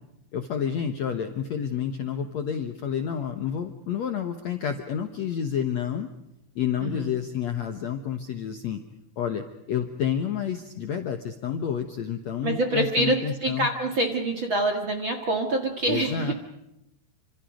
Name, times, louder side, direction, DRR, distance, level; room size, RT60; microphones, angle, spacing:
voice 1, 0.3-6.1 6.6-8.8 9.2-13.7 15.9-16.3, left 8 dB, 65° left, 7 dB, 1.7 m, -29 dB
voice 2, 6.8-7.1 12.4-16.3, right 1 dB, 45° right, 4 dB, 1.8 m, -26 dB
28.0 x 26.0 x 5.2 m, 0.85 s
omnidirectional pair, 4.7 m